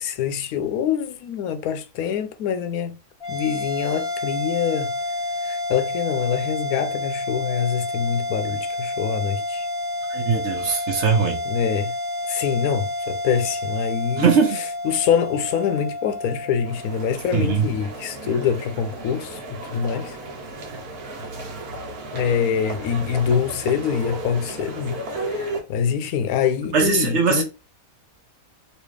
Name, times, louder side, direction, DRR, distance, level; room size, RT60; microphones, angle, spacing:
voice 1, 0.0-3.0 3.3-4.9 5.4-9.7 11.5-11.9 12.3-14.3 14.8-20.2 22.1-27.4, left 7 dB, 80° left, 1.0 m, -25 dB
sound 1, 3.2-17.8, left 2 dB, 45° left, 1.0 m, -29 dB
voice 2, 10.1-11.4 14.2-14.6 17.3-17.7 26.7-27.4, right 5 dB, 55° right, 1.0 m, -20 dB
sound 2, 16.6-25.6, right 2 dB, 85° right, 1.5 m, -34 dB
3.2 x 2.9 x 3.2 m
omnidirectional pair, 1.6 m